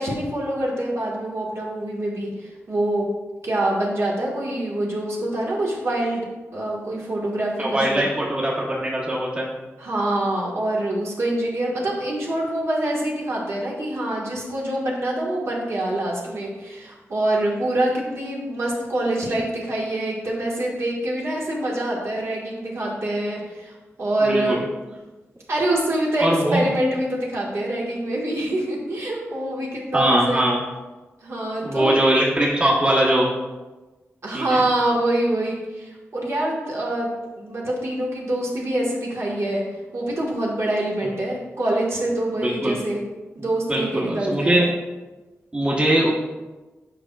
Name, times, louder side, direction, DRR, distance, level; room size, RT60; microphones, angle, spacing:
voice 1, 0.0-3.1 3.4-6.2 6.5-8.0 9.8-24.6 25.5-30.4 31.2-32.0 34.2-39.6 39.9-43.0 43.3-44.6, right 1 dB, 65° right, -4 dB, 1.6 m, -25 dB
voice 2, 7.6-9.5 24.2-24.6 26.2-26.6 29.9-30.6 31.6-33.3 34.3-34.6 42.4-42.8 43.7-44.7 45.5-46.1, right 1 dB, 20° right, -5 dB, 1.1 m, -21 dB
8.0 x 5.5 x 2.4 m, 1.2 s
wide cardioid pair, 130°, 5 cm